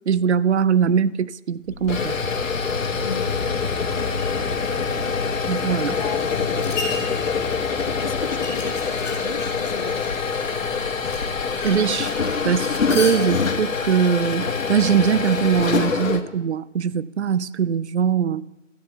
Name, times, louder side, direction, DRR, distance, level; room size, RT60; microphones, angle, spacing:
voice 1, 0.1-2.2 5.5-6.0 11.6-12.1 12.4-18.4, right 7 dB, 60° right, 19 dB, 0.6 m, -21 dB
sound 1, 1.7-16.2, left 5 dB, 85° left, 1.6 m, -25 dB
voice 2, 3.0-3.4 3.9-4.3 6.0-6.8 8.0-10.0, left 4 dB, 35° left, 10 dB, 0.7 m, -36 dB
sound 2, 3.9-15.6, left 3 dB, 5° left, 1.6 m, -37 dB
13.5 x 7.3 x 9.3 m, 0.95 s
hypercardioid pair, 175°, 39 cm